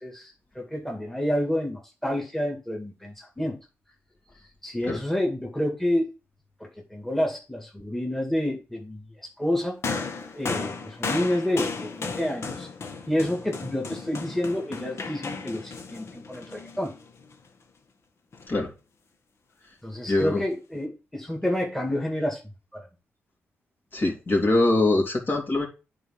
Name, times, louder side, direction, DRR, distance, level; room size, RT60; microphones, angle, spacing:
voice 1, 0.0-3.6 4.6-6.1 6.6-9.1 9.4-9.8 10.3-12.7 13.1-16.9 19.8-22.4 22.7-22.9, left 1 dB, 5° left, -1 dB, 2.5 m, -29 dB
sound 1, 9.8-17.3 18.3-18.5, left 4 dB, 60° left, 1.4 m, -34 dB
voice 2, 20.1-20.4 23.9-25.7, left 2 dB, 40° left, 0 dB, 3.4 m, -23 dB
9.5 x 4.5 x 5.9 m, 0.31 s
cardioid pair, 70°, 5 cm